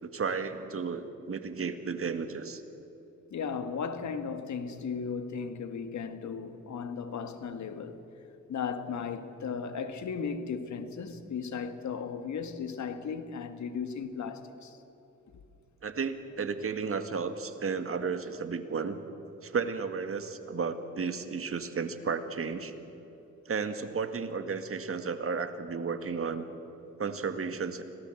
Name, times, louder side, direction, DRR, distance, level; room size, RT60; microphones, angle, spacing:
voice 1, 0.0-2.6 15.8-19.0 19.4-22.7 23.5-26.4 27.0-27.8, right 5 dB, 45° right, 2.0 m, -33 dB
voice 2, 3.3-8.0 8.5-14.8, left 6 dB, 65° left, 1.9 m, -36 dB
26.0 x 17.5 x 7.9 m
supercardioid pair, 65°, 31 cm